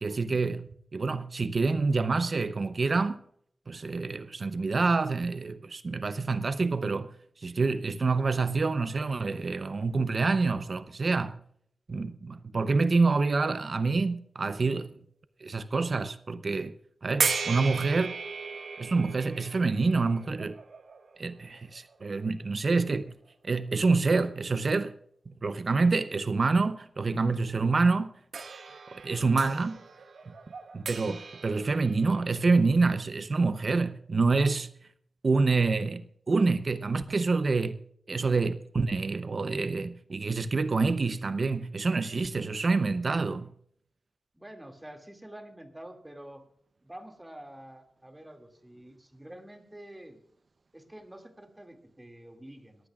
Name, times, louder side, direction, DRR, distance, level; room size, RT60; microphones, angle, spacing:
voice 1, 0.0-3.2 3.7-7.1 7.4-11.4 11.9-15.0 15.4-16.7 17.0-18.1 18.8-20.6 21.2-23.1 23.4-24.9 25.4-28.1 28.9-29.8 30.7-34.7 35.2-37.8 38.1-43.5, right 3 dB, 50° right, 0.6 m, -27 dB
sound 1, 17.2-22.2 23.1-23.2 28.3-32.6, right 5 dB, 90° right, 1.6 m, -36 dB
voice 2, 44.3-46.4 46.8-50.2 50.7-52.9, right 1 dB, 10° right, 2.2 m, -47 dB
20.5 x 15.0 x 2.4 m
wide cardioid pair, 110°, 0 cm